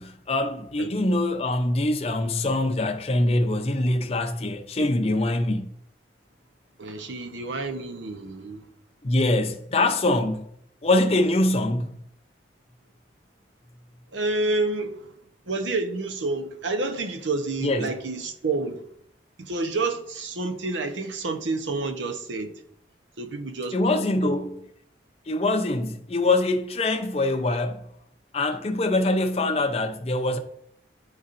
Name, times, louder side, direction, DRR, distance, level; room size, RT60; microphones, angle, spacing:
voice 1, 0.0-5.7 9.0-10.5 10.8-12.0 17.6-17.9 23.7-24.6 25.3-27.9 28.3-30.4, left 2 dB, 35° left, 0.5 m, -24 dB
voice 2, 6.8-8.7 14.1-15.1 15.5-18.9 19.4-22.5 23.2-23.8 24.2-24.3, right 3 dB, 90° right, 0.8 m, -29 dB
11.0 x 4.1 x 2.5 m
head